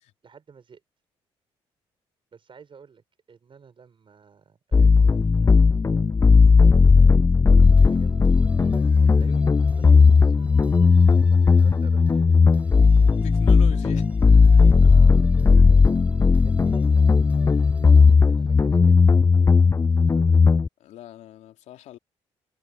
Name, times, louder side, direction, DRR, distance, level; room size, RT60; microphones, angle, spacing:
voice 1, 0.2-0.8 2.3-5.8 6.9-7.2 7.5-8.6 9.0-13.1 14.8-17.1 18.1-19.7 20.0-20.5, right 6 dB, 45° right, 6.1 m, -51 dB
sound 1, 4.7-20.7, left 4 dB, 25° left, 0.5 m, -16 dB
sound 2, 7.6-18.1, right 1 dB, 10° right, 7.6 m, -46 dB
voice 2, 13.2-14.1 20.8-22.0, left 13 dB, 80° left, 3.4 m, -42 dB
supercardioid pair, 70°, 12 cm